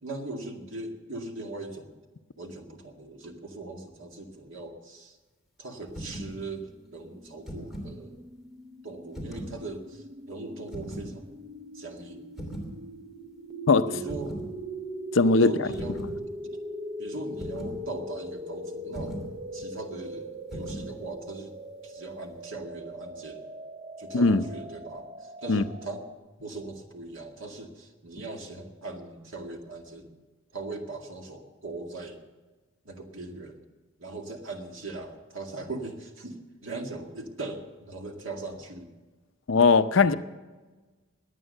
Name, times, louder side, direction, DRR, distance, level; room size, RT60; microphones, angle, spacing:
voice 1, 0.0-1.9 2.4-5.2 5.6-8.2 8.8-11.3 11.7-12.2 13.9-14.4 15.3-16.0 17.0-19.3 19.5-21.6 21.8-23.4 24.0-26.0 26.4-30.1 30.5-32.2 32.9-33.6 34.0-38.9 40.0-40.2, right 2 dB, 65° right, 2.1 m, -40 dB
sound 1, 5.9-6.4 7.2-8.0 9.1-9.6 10.7-11.1 12.4-12.7 14.1-14.5 15.7-16.2 17.4-17.8 18.9-19.3 20.5-20.9, equal, ahead, 2.9 m, -38 dB
sound 2, 7.0-26.1, right 1 dB, 30° right, 0.7 m, -41 dB
voice 2, 15.1-15.5 24.1-24.4 25.5-25.6 39.5-40.1, left 4 dB, 60° left, 0.6 m, -19 dB
21.0 x 8.9 x 6.5 m
head